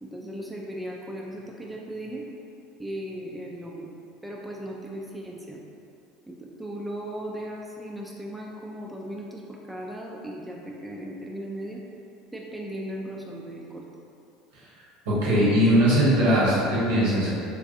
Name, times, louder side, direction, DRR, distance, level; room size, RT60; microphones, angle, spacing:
voice 1, 0.0-2.3 2.8-3.9 4.2-5.6 6.3-11.8 12.3-13.8, right 1 dB, 5° right, -2 dB, 0.4 m, -37 dB
voice 2, 15.0-17.3, equal, 80° right, -8 dB, 1.3 m, -20 dB
3.5 x 3.1 x 2.6 m, 2.6 s
hypercardioid pair, 80°, 0 cm